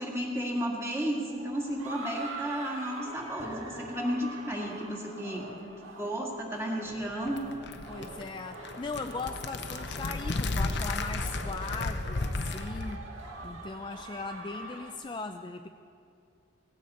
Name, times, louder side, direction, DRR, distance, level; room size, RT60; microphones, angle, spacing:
voice 1, 0.0-5.5 6.0-7.5, equal, 15° right, -1 dB, 2.0 m, -33 dB
sound 1, 1.2-14.9, right 2 dB, 75° right, 2.0 m, -44 dB
Spring Drip Hit, 3.4-5.3, left 1 dB, 50° right, 2.2 m, -47 dB
sound 2, 6.9-13.0, left 3 dB, 60° left, 0.7 m, -34 dB
voice 2, 7.9-13.1 13.4-15.7, left 3 dB, 25° left, 6 dB, 0.3 m, -39 dB
17.5 x 15.5 x 4.3 m, 2.5 s
head